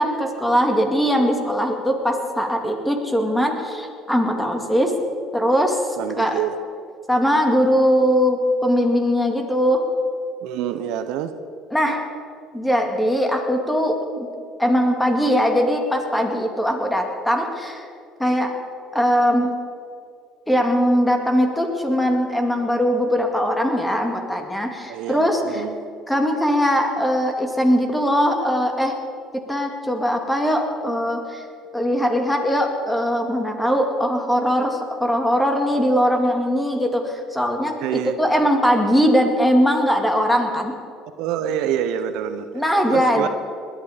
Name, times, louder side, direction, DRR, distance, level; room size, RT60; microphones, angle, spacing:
voice 1, 0.0-4.9 5.3-6.4 7.1-9.8 11.7-12.1 12.5-14.3 14.6-17.9 18.2-18.5 18.9-19.5 20.5-25.6 26.1-28.9 29.3-31.4 31.7-40.7 42.5-43.3, equal, 5° left, 3 dB, 2.3 m, -20 dB
voice 2, 6.0-6.5 10.4-11.3 24.9-25.8 37.8-38.2 41.2-42.5 42.9-43.3, right 10 dB, 80° right, 10 dB, 0.8 m, -26 dB
20.0 x 11.0 x 5.1 m, 2.2 s
supercardioid pair, 95°, 0 cm